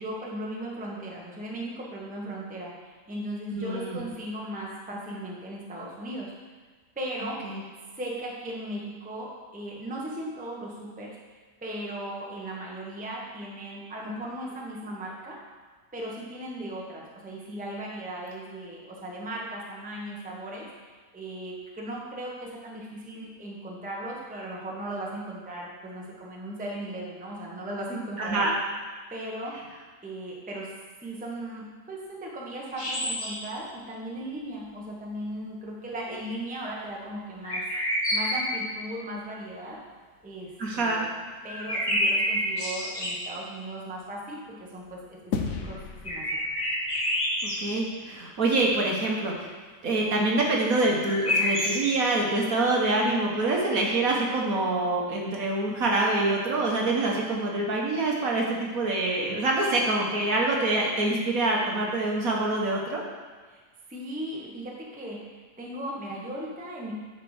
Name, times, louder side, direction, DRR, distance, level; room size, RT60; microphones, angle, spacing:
voice 1, 0.0-6.3 7.0-7.4 8.0-11.1 11.6-15.4 15.9-20.7 21.1-28.5 29.1-29.6 30.0-30.7 31.0-37.6 38.1-39.8 40.2-41.1 41.4-46.3 63.5-63.6 63.9-66.9, right 1 dB, 5° right, -3 dB, 0.9 m, -37 dB
voice 2, 3.5-4.0 7.2-7.6 28.2-28.5 40.6-41.1 47.4-49.5 49.8-63.0, right 2 dB, 60° right, -2 dB, 1.5 m, -26 dB
sound 1, 32.7-33.5 37.4-38.7 41.5-43.3 46.1-47.7 51.0-51.8, left 1 dB, 20° left, 1.1 m, -28 dB
sound 2, 45.3-47.9, left 5 dB, 60° left, 1.0 m, -35 dB
10.5 x 4.4 x 4.9 m, 1.4 s
omnidirectional pair, 1.8 m